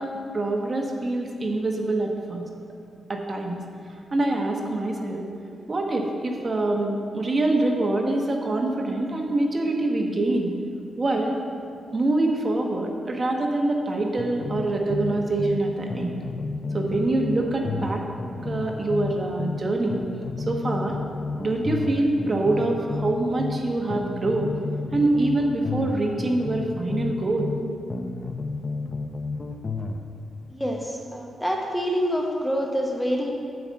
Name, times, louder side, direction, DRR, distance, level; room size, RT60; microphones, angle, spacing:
voice 1, 0.0-2.4 3.1-3.6 4.1-5.2 5.7-10.5 11.0-11.4 11.9-16.2 16.7-18.0 18.4-20.0 20.4-21.0 21.4-24.5 24.9-27.5, right 2 dB, 30° right, 1 dB, 1.1 m, -25 dB
sound 1, 14.2-15.6 15.9-19.6 19.9-23.6 23.9-27.6 27.9-30.0, left 3 dB, 30° left, 0.6 m, -31 dB
voice 2, 30.5-33.3, equal, 5° left, 0 dB, 1.0 m, -26 dB
9.3 x 5.0 x 7.6 m, 2.4 s
cardioid pair, 105°, 0 cm